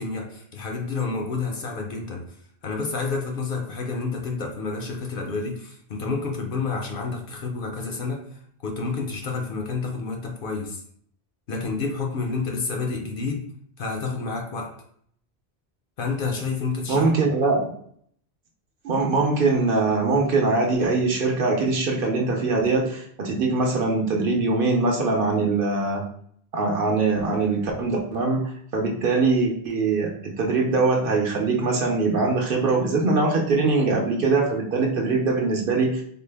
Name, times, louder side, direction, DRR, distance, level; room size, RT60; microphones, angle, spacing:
voice 1, 0.0-2.3 2.6-10.8 11.5-13.5 13.8-14.7 16.0-17.1 17.4-17.5, left 4 dB, 60° left, 2 dB, 0.7 m, -29 dB
voice 2, 16.9-17.7 18.8-26.0 26.5-28.4 28.7-36.0, right 3 dB, 60° right, 0 dB, 0.8 m, -22 dB
3.8 x 2.0 x 3.3 m, 0.64 s
omnidirectional pair, 1.1 m